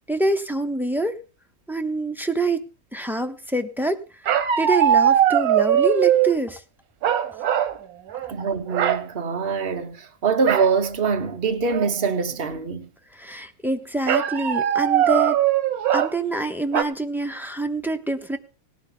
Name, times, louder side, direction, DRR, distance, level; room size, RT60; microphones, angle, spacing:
voice 1, 0.1-1.2 1.7-2.6 2.9-4.0 4.6-6.6 13.1-15.4 15.9-18.4, right 2 dB, ahead, 0.5 m, -25 dB
sound 1, 4.3-6.4 7.0-7.8 8.1-8.4 8.7-9.0 10.5-10.7 11.2-11.3 11.7-12.1 14.1-16.1 16.7-16.8, right 10 dB, 90° right, 1.4 m, -20 dB
voice 2, 8.3-12.9, right 5 dB, 45° right, 1.3 m, -24 dB
17.5 x 11.0 x 3.9 m
omnidirectional pair, 1.5 m